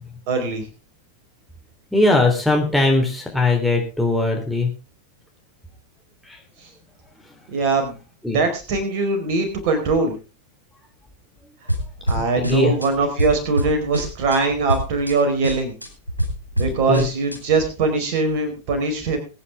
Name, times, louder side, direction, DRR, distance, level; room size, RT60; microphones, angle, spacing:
voice 1, 0.3-0.7 7.5-8.0 8.3-10.1 12.1-15.8 16.6-19.2, right 3 dB, 45° right, 6 dB, 4.6 m, -21 dB
voice 2, 1.9-4.7 6.3-6.4 8.2-8.4 12.2-12.7 16.9-17.0, left 2 dB, ahead, 0 dB, 3.7 m, -19 dB
sound 1, 11.7-12.9 13.2-14.4 14.7-15.1 15.4-17.4, equal, 85° right, 4.3 m, -25 dB
21.0 x 9.8 x 3.6 m, 0.31 s
figure-of-eight pair, 90°, 0 cm